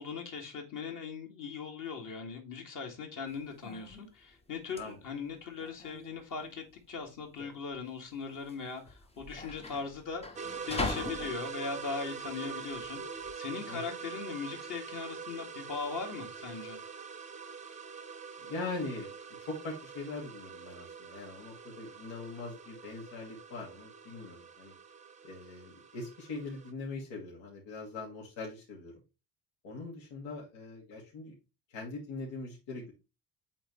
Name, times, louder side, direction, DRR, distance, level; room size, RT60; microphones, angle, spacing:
voice 1, 0.0-16.8, left 5 dB, 45° left, 2.2 m, -40 dB
sound 1, 3.3-13.3, left 3 dB, 15° left, 0.6 m, -42 dB
sound 2, 10.4-26.7, right 6 dB, 15° right, 0.7 m, -44 dB
voice 2, 18.4-19.1 19.4-24.7 25.2-28.9 29.6-31.4 31.7-32.9, left 3 dB, 70° left, 2.7 m, -41 dB
8.4 x 3.9 x 3.2 m
cardioid pair, 140°, 46 cm